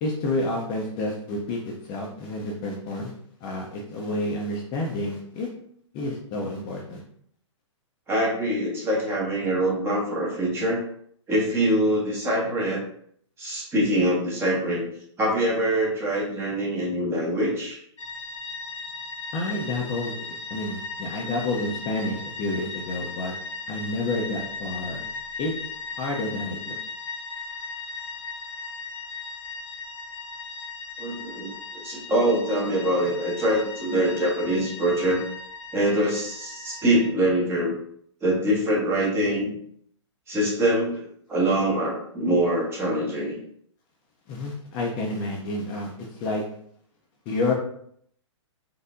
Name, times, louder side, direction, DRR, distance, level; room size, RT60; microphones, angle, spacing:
voice 1, 0.0-3.1 3.4-5.5 5.9-7.0 19.3-20.2 20.5-23.3 23.7-25.1 25.4-25.5 26.0-26.8 44.3-46.4 47.3-47.5, left 2 dB, 30° left, -1 dB, 0.6 m, -29 dB
voice 2, 8.1-10.8 11.3-12.8 13.4-14.8 15.2-17.8 31.0-35.2 35.7-37.8 38.2-39.5 40.3-43.4, right 1 dB, 15° right, -3 dB, 1.1 m, -24 dB
sound 1, 18.0-37.1, left 4 dB, 85° left, 0.7 m, -37 dB
4.2 x 2.7 x 2.5 m, 0.66 s
hypercardioid pair, 135°, 16 cm